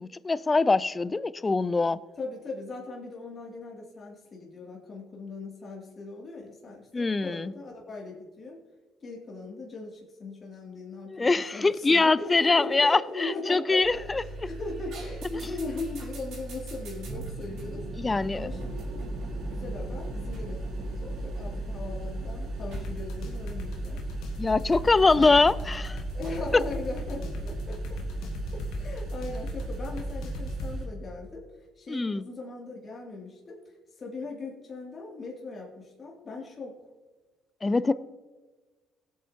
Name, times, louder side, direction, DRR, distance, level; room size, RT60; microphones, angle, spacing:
voice 1, 0.0-2.0 6.9-7.5 11.1-14.2 18.0-18.5 24.4-26.0 26.5-26.6 31.9-32.2 37.6-37.9, left 3 dB, 25° left, 0.5 m, -23 dB
voice 2, 2.2-8.6 9.0-17.9 18.3-18.8 19.5-24.0 25.1-25.5 26.1-28.0 28.5-31.5 31.8-36.8 37.9-38.0, left 3 dB, 45° left, 2.5 m, -39 dB
sound 1, 13.8-30.8, right 1 dB, 75° right, 4.0 m, -36 dB
sound 2, 22.7-30.7, left 4 dB, 75° left, 1.4 m, -41 dB
18.0 x 8.5 x 2.8 m
hypercardioid pair, 60°, 0 cm